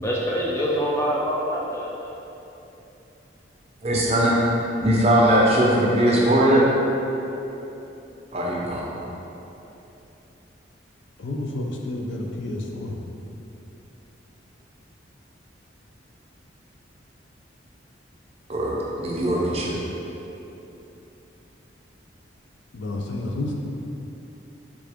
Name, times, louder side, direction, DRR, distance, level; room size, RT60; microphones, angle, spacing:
voice 1, 0.0-2.1, equal, 15° left, -4 dB, 0.5 m, -25 dB
voice 2, 3.8-4.4 4.8-6.7 8.3-8.9 18.5-19.8, right 1 dB, 30° right, -4 dB, 0.6 m, -20 dB
voice 3, 11.2-13.0 22.7-23.5, left 2 dB, 75° left, 1 dB, 0.4 m, -30 dB
3.7 x 3.6 x 3.4 m, 3.0 s
head